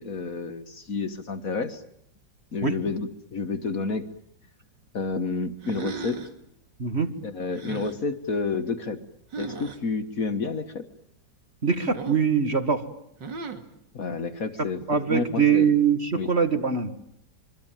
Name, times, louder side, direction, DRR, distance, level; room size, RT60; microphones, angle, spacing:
voice 1, 0.0-1.8 2.5-4.1 4.9-6.2 7.2-9.0 9.4-10.8 13.9-15.7 16.1-16.3, left 4 dB, 50° left, 11 dB, 1.8 m, -30 dB
sound 1, 5.6-6.4 7.5-8.0 9.3-9.8 11.9-12.3 13.2-13.7, right 4 dB, 70° right, 3.0 m, -36 dB
voice 2, 11.6-12.8 14.6-16.9, right 6 dB, 35° right, 9 dB, 2.1 m, -23 dB
26.0 x 23.5 x 9.1 m, 0.74 s
omnidirectional pair, 2.0 m